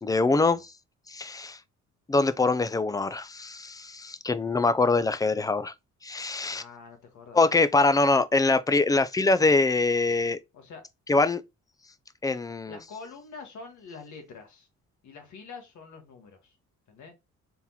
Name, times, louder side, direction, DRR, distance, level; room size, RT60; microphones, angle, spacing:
voice 1, 0.0-0.7 1.1-1.6 2.1-5.7 6.0-6.6 7.3-10.4 11.1-11.4 12.2-12.8, left 3 dB, 10° left, 0.3 m, -24 dB
voice 2, 6.5-7.5 10.5-10.8 12.7-14.7 15.0-16.5 16.9-17.1, left 4 dB, 75° left, 1.5 m, -45 dB
4.2 x 3.7 x 2.8 m
cardioid pair, 90°, 30 cm